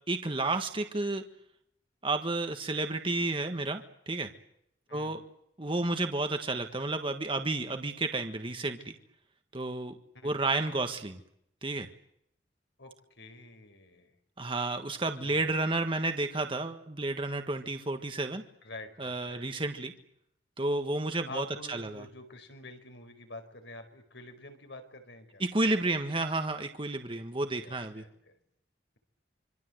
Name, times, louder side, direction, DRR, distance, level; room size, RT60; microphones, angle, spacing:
voice 1, 0.1-1.2 2.0-4.3 4.9-5.2 5.6-9.0 9.5-9.9 10.2-11.2 11.6-11.9 14.4-18.4 19.0-19.9 20.6-22.0 25.4-28.0, right 2 dB, 30° right, 6 dB, 1.6 m, -31 dB
voice 2, 12.8-14.1 15.2-15.5 18.6-19.4 21.3-25.4 27.5-28.3, left 2 dB, 80° left, 7 dB, 4.9 m, -47 dB
26.0 x 25.0 x 8.0 m, 0.74 s
head